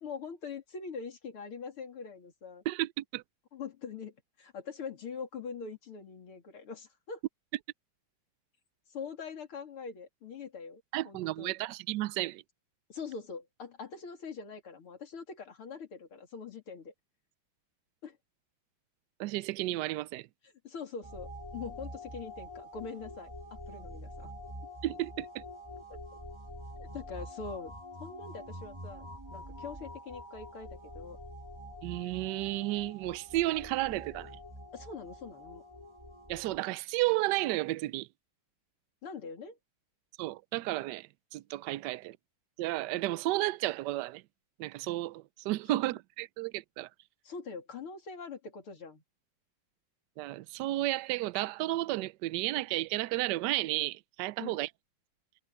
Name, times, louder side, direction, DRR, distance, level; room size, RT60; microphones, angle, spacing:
voice 1, 0.0-2.6 3.5-7.2 8.9-11.5 12.9-16.9 18.0-18.2 20.4-24.3 25.9-26.0 26.8-27.7 28.0-31.2 34.7-35.6 39.0-39.6 45.7-45.8 47.2-49.0 54.4-54.6, left 5 dB, 80° left, 3.8 m, -43 dB
voice 2, 2.7-3.2 10.9-12.4 19.2-20.3 24.8-25.4 31.8-34.3 36.3-38.1 40.2-41.1 41.3-42.2 42.6-44.2 44.6-46.9 50.2-54.7, right 17 dB, 80° right, 0.9 m, -32 dB
sound 1, 21.0-36.6, equal, 15° right, 1.8 m, -46 dB
omnidirectional pair, 2.3 m